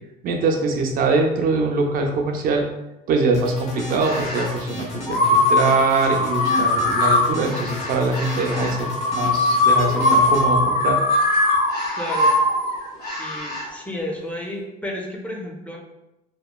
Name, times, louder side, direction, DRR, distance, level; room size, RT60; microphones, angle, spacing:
voice 1, 0.2-2.6 3.1-11.0, right 3 dB, 55° right, 3 dB, 0.4 m, -23 dB
sound 1, 3.3-10.4, left 1 dB, 40° left, 0.9 m, -34 dB
sound 2, 3.9-4.5 5.1-13.7, left 2 dB, 65° left, 1.2 m, -21 dB
voice 2, 12.0-12.4 13.2-15.8, left 1 dB, 10° left, -1 dB, 0.4 m, -32 dB
3.0 x 2.1 x 2.2 m, 0.93 s
cardioid pair, 110°, 17 cm